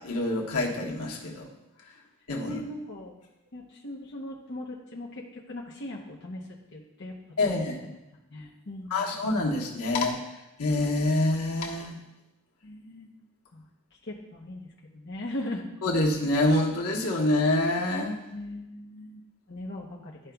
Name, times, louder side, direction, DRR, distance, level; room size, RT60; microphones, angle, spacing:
voice 1, 0.0-1.5 2.3-2.6 7.4-7.8 8.9-10.2 10.6-12.0 15.8-18.2, left 2 dB, 90° left, -1 dB, 1.2 m, -26 dB
voice 2, 2.4-3.2 3.5-6.4 6.7-7.1 7.4-8.0 8.3-9.3 12.6-13.1 13.5-13.6 14.0-14.7 14.9-15.6 18.3-19.2 19.5-20.2, left 1 dB, 50° left, -3 dB, 0.8 m, -39 dB
12.0 x 5.0 x 2.3 m, 0.96 s
head